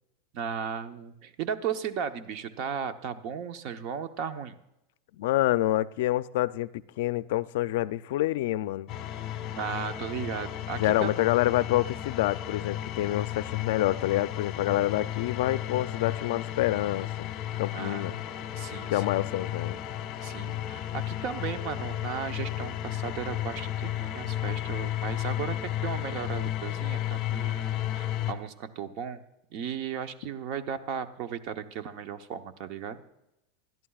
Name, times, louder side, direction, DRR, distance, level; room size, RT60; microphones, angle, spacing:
voice 1, 0.3-4.6 9.5-11.2 17.7-18.1 18.5-19.2 20.2-29.2 29.5-33.0, right 7 dB, 50° right, 0.8 m, -36 dB
voice 2, 5.2-8.9 10.8-17.3 17.6-18.2 18.9-19.8, left 15 dB, 75° left, 0.4 m, -27 dB
sound 1, 8.9-28.3, left 12 dB, 40° left, 1.2 m, -33 dB
20.0 x 12.0 x 2.4 m
supercardioid pair, 145°, 0 cm